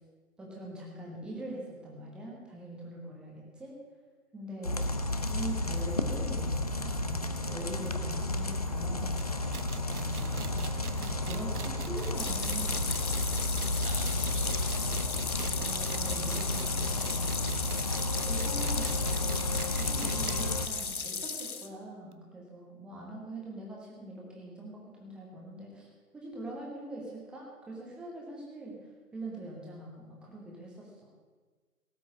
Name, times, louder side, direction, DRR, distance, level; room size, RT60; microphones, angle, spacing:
voice 1, 0.4-3.8 4.3-4.9 5.3-13.2 15.4-17.5 18.3-19.0 19.4-25.9 26.1-31.1, right 1 dB, ahead, -3 dB, 1.1 m, -43 dB
sound 1, 4.6-20.7, left 2 dB, 25° left, 0.6 m, -32 dB
sound 2, 9.2-20.5 20.8-20.9 21.2-21.3 22.1-22.2, right 4 dB, 75° right, 1.1 m, -44 dB
voice 2, 10.1-10.8 13.8-15.2, right 4 dB, 35° right, 5 dB, 1.7 m, -47 dB
sound 3, 12.1-21.7, left 5 dB, 70° left, 1.3 m, -36 dB
17.5 x 6.1 x 8.6 m, 1.4 s
figure-of-eight pair, 140°, 45 cm